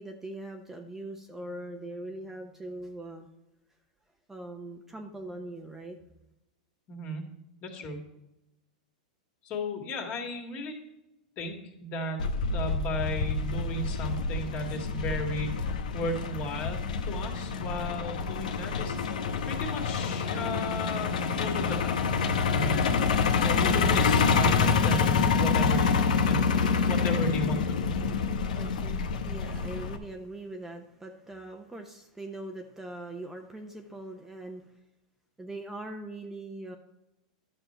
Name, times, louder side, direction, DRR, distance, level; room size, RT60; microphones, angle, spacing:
voice 1, 0.0-3.3 4.3-6.0 24.8-25.1 28.0-34.7 35.4-36.8, right 1 dB, 10° right, 3 dB, 0.8 m, -41 dB
voice 2, 6.9-7.3 7.6-8.0 9.4-10.7 11.4-11.6 11.8-12.2 12.5-15.6 15.9-19.0 19.5-21.9 22.5-22.8 23.3-26.5 26.9-27.9, left 1 dB, 40° left, 2 dB, 2.2 m, -35 dB
Truck, 12.2-30.0, left 5 dB, 85° left, 1.0 m, -27 dB
11.5 x 6.6 x 4.4 m, 0.91 s
hypercardioid pair, 125°, 4 cm